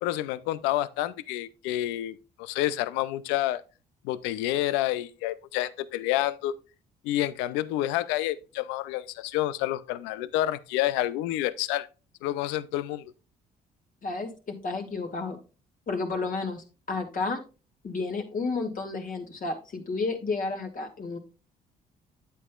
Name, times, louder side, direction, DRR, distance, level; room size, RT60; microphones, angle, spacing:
voice 1, 0.0-3.6 4.0-6.5 7.0-11.9 12.2-13.0, left 14 dB, 85° left, 0.5 m, -29 dB
voice 2, 14.0-15.4 15.9-17.4 17.8-21.2, left 3 dB, 50° left, 2.4 m, -31 dB
9.1 x 8.2 x 2.4 m
supercardioid pair, 60°, 18 cm